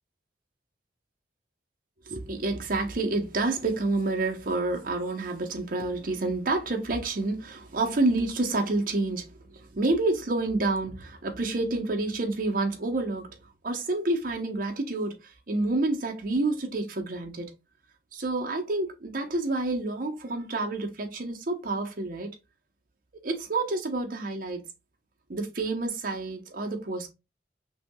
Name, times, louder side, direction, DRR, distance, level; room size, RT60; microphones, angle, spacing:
voice 1, 2.1-13.4 13.6-17.5 18.1-22.3 23.2-24.6 25.3-27.1, right 2 dB, 50° right, 0.8 m, -28 dB
5.7 x 2.7 x 2.2 m
head